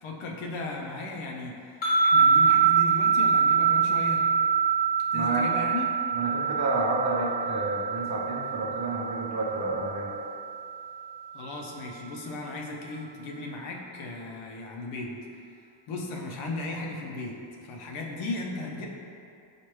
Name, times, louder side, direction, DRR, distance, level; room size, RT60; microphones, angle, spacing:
voice 1, 0.0-4.2 5.1-5.9 11.3-15.2 15.9-18.9, left 2 dB, 75° left, 0 dB, 0.7 m, -36 dB
sound 1, 1.8-11.1, right 6 dB, 20° left, 1.1 m, -25 dB
voice 2, 5.1-5.5 6.1-10.1, right 2 dB, 35° right, -3 dB, 0.6 m, -30 dB
4.5 x 2.5 x 3.1 m, 2.5 s
cardioid pair, 110°, 49 cm